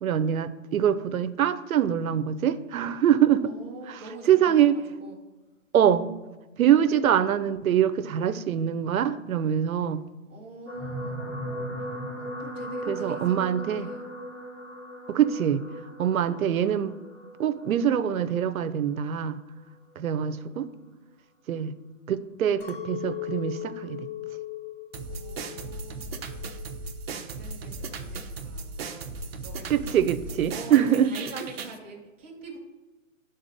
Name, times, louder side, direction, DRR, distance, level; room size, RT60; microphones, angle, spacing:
voice 1, 0.0-3.5 3.9-4.0 4.3-4.8 5.7-6.1 6.6-10.0 12.9-13.9 15.1-15.6 16.0-17.0 17.4-19.4 20.0-20.7 21.5-21.7 22.1-24.0 29.7-31.1, right 9 dB, 85° right, 13 dB, 0.7 m, -24 dB
voice 2, 3.4-5.2 6.6-6.8 10.3-11.3 12.1-14.1 20.2-20.4 25.1-26.3 27.1-30.1 30.5-32.6, right 2 dB, 10° right, -4 dB, 0.4 m, -45 dB
sound 1, 10.7-19.1 19.9-20.1 20.4-20.5, equal, 10° left, 1.1 m, -38 dB
Chink clink, 22.6-27.0 27.3-28.0, left 13 dB, 40° left, 0.6 m, -39 dB
sound 2, 24.9-31.8, right 4 dB, 50° right, 0.7 m, -37 dB
11.5 x 3.9 x 2.6 m, 1.1 s
hypercardioid pair, 155°, 41 cm